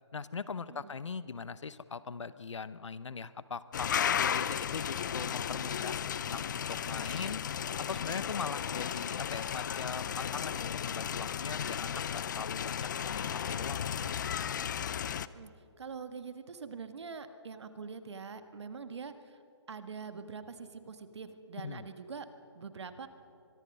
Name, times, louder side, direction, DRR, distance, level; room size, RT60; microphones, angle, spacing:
voice 1, 0.1-4.0 4.3-7.4 7.9-14.1 21.6-21.9, left 5 dB, 85° left, 16 dB, 0.8 m, -41 dB
sound 1, 3.7-15.3, left 8 dB, 40° left, 0.6 m, -34 dB
voice 2, 15.3-19.4 19.7-22.3 22.5-23.1, right 5 dB, 70° right, 9 dB, 1.7 m, -44 dB
23.5 x 22.0 x 5.6 m, 2.7 s
hypercardioid pair, 155°, 15 cm